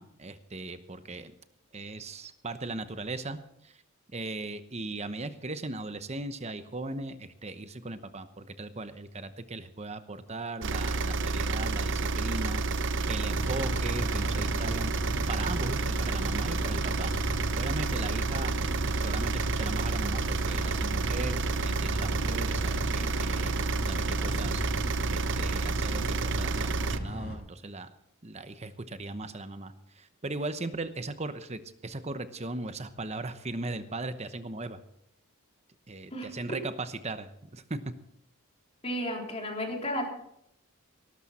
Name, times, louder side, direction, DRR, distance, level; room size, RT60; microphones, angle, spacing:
voice 1, 0.0-1.3 1.7-3.8 4.1-12.8 13.1-14.9 15.3-17.1 17.6-23.6 23.9-24.6 25.1-27.9 28.2-34.8 35.9-37.8, right 2 dB, 30° right, 10 dB, 0.9 m, -38 dB
sound 1, 10.6-27.0, right 3 dB, 55° right, 0.7 m, -29 dB
sound 2, 13.3-27.4, equal, 45° left, 4.7 m, -38 dB
sound 3, 20.1-25.7, right 1 dB, 85° right, 5.3 m, -48 dB
voice 2, 38.8-40.1, equal, 30° left, 0 dB, 3.5 m, -33 dB
18.5 x 12.5 x 4.3 m, 0.74 s
head